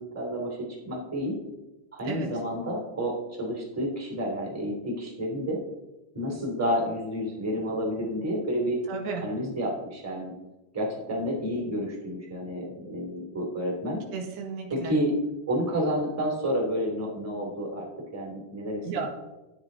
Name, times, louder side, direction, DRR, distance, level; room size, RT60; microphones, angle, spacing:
voice 1, 0.0-1.3 1.9-5.6 6.1-8.8 9.2-10.3 10.7-14.0 14.7-15.1 15.5-17.9 18.1-18.8, equal, 5° right, -2 dB, 2.2 m, -30 dB
voice 2, 8.9-9.2 14.1-15.0 18.9-19.1, right 5 dB, 80° right, 1 dB, 3.7 m, -33 dB
13.0 x 9.7 x 4.0 m, 1.0 s
omnidirectional pair, 4.6 m